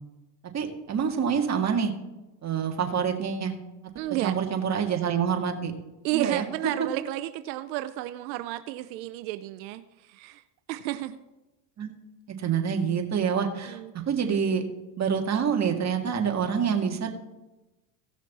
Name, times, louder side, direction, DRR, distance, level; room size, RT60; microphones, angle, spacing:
voice 1, 0.5-1.9 2.4-3.5 4.2-5.7 6.1-6.4 6.8-6.9 11.8-11.9 12.3-13.8 14.1-14.6 15.0-17.1, right 7 dB, 30° right, 3 dB, 1.8 m, -26 dB
voice 2, 4.0-4.4 6.0-10.4 10.7-11.2 13.7-13.9, right 15 dB, 90° right, 11 dB, 0.7 m, -32 dB
16.5 x 6.3 x 4.1 m, 1.0 s
supercardioid pair, 105°, 50 cm